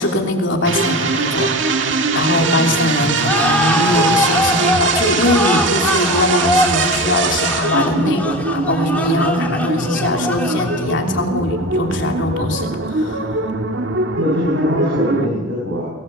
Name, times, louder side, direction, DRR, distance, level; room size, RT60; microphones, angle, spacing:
voice 1, 0.0-13.3, left 2 dB, 70° left, 2 dB, 3.2 m, -21 dB
sound 1, 0.6-15.3, right 3 dB, 75° right, 2.0 m, -21 dB
sound 2, 3.2-11.1, left 1 dB, 10° left, 2.4 m, -22 dB
voice 2, 7.8-8.2 14.2-15.8, left 1 dB, 90° right, -3 dB, 7.1 m, -22 dB
23.5 x 19.0 x 8.0 m, 1.3 s
head